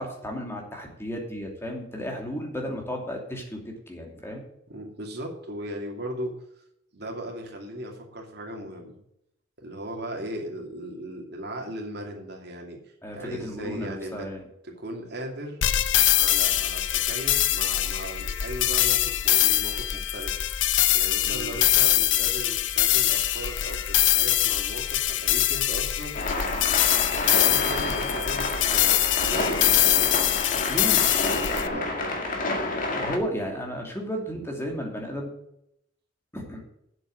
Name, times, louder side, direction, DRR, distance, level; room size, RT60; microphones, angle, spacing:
voice 1, 0.0-4.4 13.0-14.5 21.2-21.6 30.7-31.1 31.7-31.8 32.6-35.3 36.3-36.6, equal, 15° left, 1 dB, 2.6 m, -34 dB
voice 2, 4.7-6.3 6.9-9.0 9.6-12.8 13.1-14.3 14.6-15.6 16.1-20.4 20.9-26.2 26.9-30.1 30.5-31.0 31.3-32.2, right 1 dB, 60° right, 1 dB, 2.7 m, -37 dB
sound 1, 15.6-31.7, left 13 dB, 75° left, 0.6 m, -23 dB
sound 2, 26.1-33.2, left 2 dB, 45° left, 2.0 m, -29 dB
7.8 x 7.7 x 7.7 m, 0.77 s
head